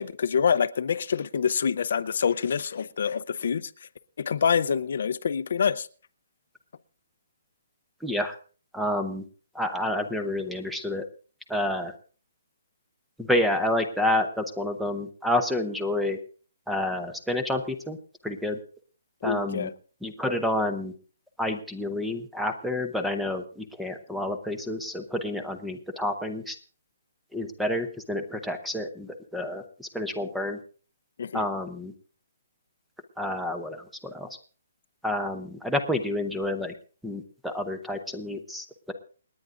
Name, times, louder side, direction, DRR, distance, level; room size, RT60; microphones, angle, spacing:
voice 1, 0.0-3.7 4.2-5.9 19.2-19.7 31.2-31.5, left 7 dB, 55° left, 0.6 m, -26 dB
voice 2, 8.0-8.4 8.7-9.2 9.5-11.0 11.5-11.9 13.2-16.2 16.7-18.0 18.2-18.6 19.2-19.7 20.0-20.9 21.4-26.6 27.3-30.6 31.3-31.9 33.2-34.3 35.0-36.7 37.0-38.9, left 1 dB, ahead, 0.7 m, -29 dB
28.5 x 9.6 x 2.5 m
hypercardioid pair, 175°, 0 cm